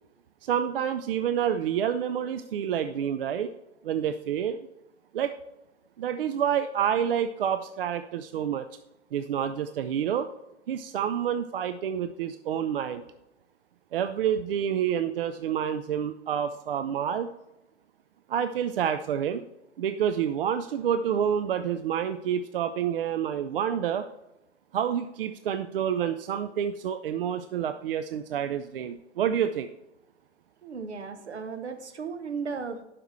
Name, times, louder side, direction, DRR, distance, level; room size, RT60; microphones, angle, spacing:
voice 1, 0.4-3.5 3.8-4.6 5.1-5.3 6.0-8.7 9.1-10.3 10.7-13.0 13.9-17.3 18.3-19.5 19.8-24.1 24.7-29.7, right 9 dB, 55° right, 10 dB, 0.5 m, -28 dB
voice 2, 30.6-32.8, right 5 dB, 70° right, 8 dB, 1.1 m, -35 dB
11.5 x 5.8 x 3.2 m, 0.96 s
figure-of-eight pair, 100°, 35 cm